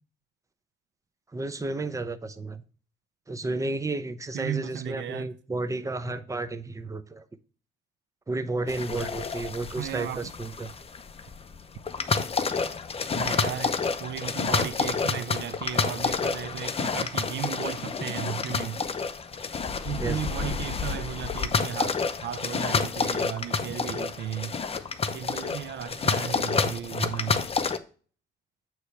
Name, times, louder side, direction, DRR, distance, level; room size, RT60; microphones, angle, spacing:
voice 1, 1.3-2.6 3.3-7.2 8.3-10.7 20.0-20.2 21.6-21.7 23.7-23.8, right 2 dB, 15° right, 0.7 m, -32 dB
voice 2, 4.3-5.3 9.8-10.3 13.1-18.9 19.8-24.6 25.1-27.5, right 10 dB, 65° right, 0.5 m, -35 dB
sound 1, 8.7-27.8, left 5 dB, 30° left, 0.7 m, -29 dB
8.0 x 3.1 x 5.7 m
cardioid pair, 90°, 20 cm